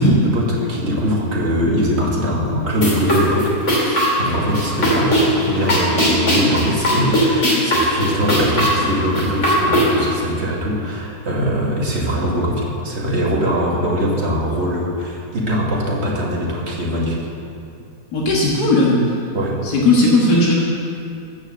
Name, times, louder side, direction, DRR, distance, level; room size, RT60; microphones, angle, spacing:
voice 1, 0.0-17.2 19.3-19.7, equal, 45° right, -3 dB, 2.4 m, -22 dB
sound 1, 2.7-10.1, equal, 50° left, 3.1 m, -19 dB
voice 2, 18.1-19.0 19.7-20.5, left 2 dB, 85° left, -4 dB, 2.2 m, -15 dB
13.5 x 7.4 x 7.7 m, 2.5 s
omnidirectional pair, 1.7 m